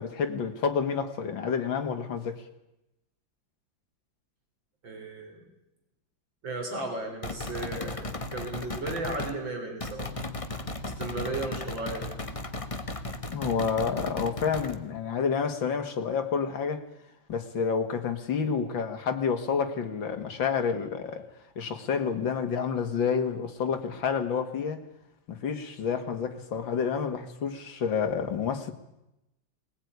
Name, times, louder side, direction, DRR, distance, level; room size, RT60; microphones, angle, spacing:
voice 1, 0.0-2.5 13.3-16.9 17.3-21.3 21.6-24.8 25.3-28.7, left 6 dB, 75° left, 2.6 m, -29 dB
voice 2, 4.8-5.4 6.4-10.1 11.0-12.1, right 2 dB, 75° right, 4.6 m, -35 dB
sound 1, 7.2-9.4 9.8-14.8, left 2 dB, 20° left, 1.3 m, -36 dB
20.5 x 20.0 x 9.6 m
omnidirectional pair, 2.1 m